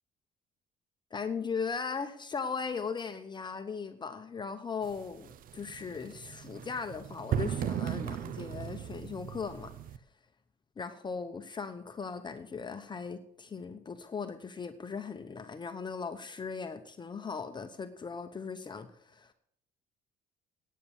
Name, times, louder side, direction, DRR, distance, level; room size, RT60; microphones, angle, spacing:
voice 1, 1.1-9.7 10.8-19.3, left 5 dB, 25° left, 0.9 m, -38 dB
sound 1, 4.8-10.0, right 9 dB, 55° right, 0.7 m, -37 dB
9.4 x 9.3 x 7.1 m
cardioid pair, 110°, 17 cm